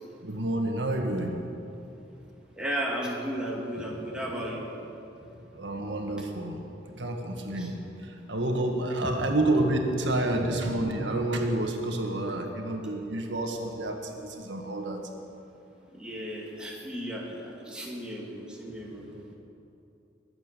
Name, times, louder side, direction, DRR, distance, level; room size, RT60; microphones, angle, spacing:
voice 1, 0.2-1.4 5.5-7.7 8.0-15.0, right 1 dB, 85° right, 3 dB, 1.7 m, -29 dB
voice 2, 2.6-4.7 7.5-7.7 9.0-9.1 10.3-10.9 15.9-19.1, equal, 5° right, -4 dB, 2.4 m, -35 dB
22.0 x 8.1 x 6.8 m, 2.7 s
head